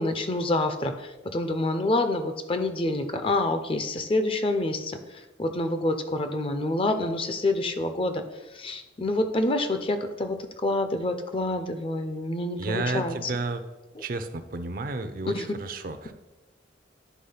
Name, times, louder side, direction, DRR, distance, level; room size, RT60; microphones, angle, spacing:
voice 1, 0.0-5.0 5.4-8.2 8.5-10.4 10.6-13.3 14.0-14.1 15.3-15.5, left 2 dB, 30° left, 8 dB, 0.6 m, -27 dB
voice 2, 12.6-13.6 14.0-16.1, right 3 dB, 50° right, 9 dB, 0.6 m, -32 dB
9.4 x 3.6 x 5.6 m, 1.1 s
head